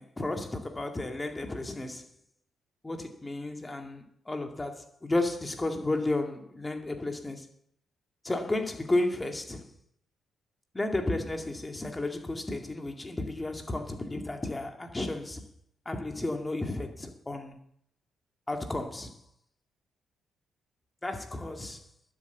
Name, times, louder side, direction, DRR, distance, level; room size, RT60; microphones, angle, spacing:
voice 1, 0.0-2.1 2.8-7.5 8.2-9.7 10.7-15.4 15.9-17.6 18.5-19.2 21.0-21.8, left 2 dB, 20° left, 2.1 m, -33 dB
12.0 x 8.3 x 7.1 m
supercardioid pair, 55°, 0 cm